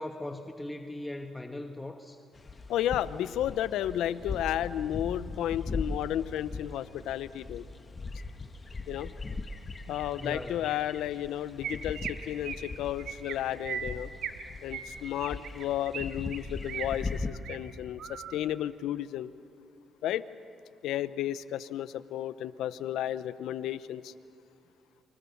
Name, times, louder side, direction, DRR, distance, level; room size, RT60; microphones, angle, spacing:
voice 1, 0.0-2.2 10.2-10.7, left 1 dB, 10° left, 5 dB, 1.3 m, -39 dB
sound 1, 2.3-17.3, left 3 dB, 30° left, 1.6 m, -40 dB
voice 2, 2.7-7.6 8.9-9.1 9.9-14.1 14.6-19.3 20.0-20.2 20.8-24.1, left 12 dB, 85° left, 15 dB, 0.8 m, -33 dB
Chirp tweet, 11.2-11.3 11.6-12.1 12.4-12.7 13.0-13.3 13.6-14.4 14.7-16.0 16.3-16.9 17.3-17.6 18.0-18.3, right 8 dB, 75° right, 2.0 m, -37 dB
29.5 x 24.5 x 7.2 m, 2.5 s
cardioid pair, 90°, 0 cm